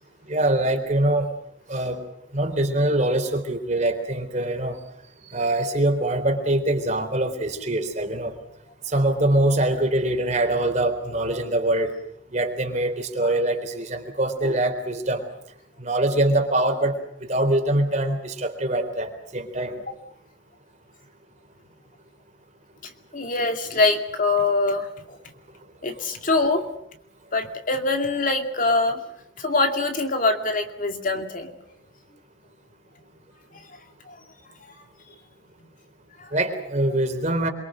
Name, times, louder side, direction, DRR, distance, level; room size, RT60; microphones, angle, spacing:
voice 1, 0.3-1.3 1.7-2.0 2.3-4.8 5.3-8.3 8.9-11.9 12.3-15.2 15.8-19.8 36.3-37.5, right 1 dB, 40° right, 5 dB, 3.9 m, -23 dB
voice 2, 23.1-25.2 25.8-26.7 27.3-29.0 29.4-31.6 33.5-33.6 34.1-34.2 34.6-34.7 36.2-36.3, left 3 dB, 45° left, 5 dB, 2.4 m, -24 dB
27.5 x 23.5 x 6.4 m, 0.73 s
head